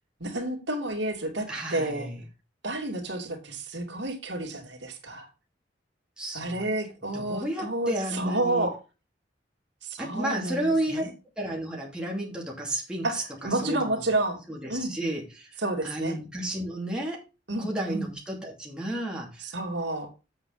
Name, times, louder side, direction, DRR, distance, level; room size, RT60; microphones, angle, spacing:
voice 1, 0.2-2.1 2.6-5.3 6.3-8.8 9.8-11.1 13.0-14.4 14.7-14.9 15.6-16.2 17.5-18.1 19.4-20.1, right 2 dB, 80° right, 1 dB, 2.7 m, -30 dB
voice 2, 1.5-2.2 6.2-6.6 7.1-8.7 10.0-11.0 11.4-14.0 14.5-15.5 15.8-17.2 17.6-19.4, right 1 dB, 5° right, -3 dB, 2.7 m, -32 dB
8.1 x 8.0 x 4.0 m, 0.30 s
head